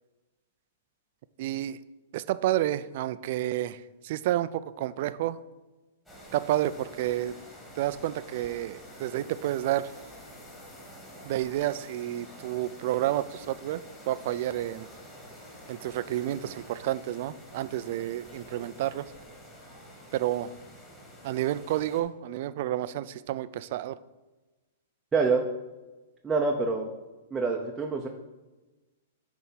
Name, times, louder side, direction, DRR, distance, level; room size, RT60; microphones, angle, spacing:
voice 1, 1.4-1.8 2.1-5.4 6.3-7.4 7.8-9.9 11.2-14.9 15.7-19.1 20.1-20.5 21.2-24.0, right 13 dB, 55° right, 15 dB, 0.4 m, -30 dB
sound 1, 6.1-22.0, equal, 10° left, 2.0 m, -48 dB
voice 2, 25.1-25.4 26.2-26.9 27.3-28.1, right 4 dB, 15° right, 1 dB, 0.7 m, -26 dB
9.4 x 3.5 x 5.7 m, 1.2 s
hypercardioid pair, 140°, 0 cm